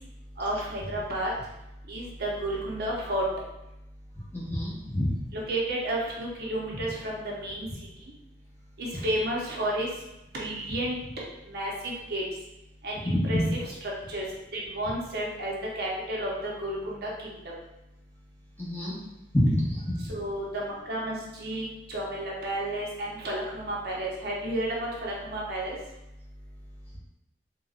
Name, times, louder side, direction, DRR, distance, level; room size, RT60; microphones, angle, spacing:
voice 1, 0.4-1.3 1.9-3.2 5.3-7.7 8.8-9.9 10.3-11.0 11.5-12.2 12.8-14.2 14.5-17.3 20.1-25.8, right 1 dB, 65° right, -3 dB, 0.7 m, -32 dB
voice 2, 4.3-5.1 13.0-13.4 18.6-18.9 19.3-19.9, left 1 dB, 10° left, -7 dB, 0.9 m, -26 dB
4.0 x 2.2 x 2.4 m, 0.92 s
head